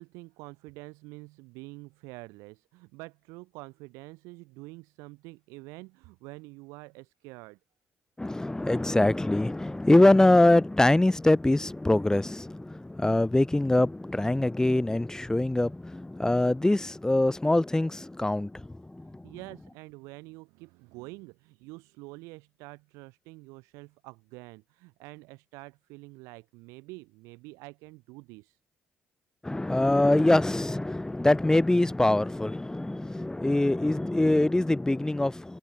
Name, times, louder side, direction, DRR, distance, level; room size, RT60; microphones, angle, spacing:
voice 1, 0.0-7.6 19.0-28.6, right 25 dB, 90° right, 4.0 m, -47 dB
voice 2, 8.2-19.2 29.4-35.6, left 1 dB, 10° left, 0.5 m, -24 dB
supercardioid pair, 55°, 5 cm